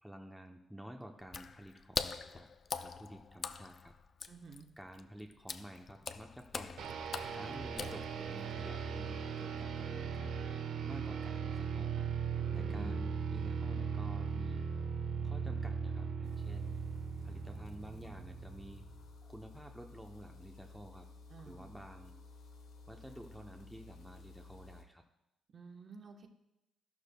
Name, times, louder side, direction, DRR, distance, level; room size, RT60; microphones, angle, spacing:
voice 1, 0.0-2.5 2.8-3.9 4.8-6.8 7.3-10.4 10.8-12.0 12.5-14.7 15.2-16.8 17.2-18.9 19.2-21.1 21.5-22.1 22.9-25.0, equal, ahead, 2 dB, 0.6 m, -51 dB
Water / Splash splatter, 1.2-8.5, left 5 dB, 35° left, 0.4 m, -43 dB
voice 2, 4.3-4.7 12.4-13.0 21.3-21.7 25.5-26.3, right 4 dB, 40° right, 4 dB, 1.0 m, -52 dB
sound 1, 6.8-19.0, right 6 dB, 75° right, 0.9 m, -38 dB
sound 2, 16.2-24.8, left 3 dB, 65° left, 1.1 m, -55 dB
13.5 x 11.5 x 2.2 m, 0.90 s
cardioid pair, 145°, 0 cm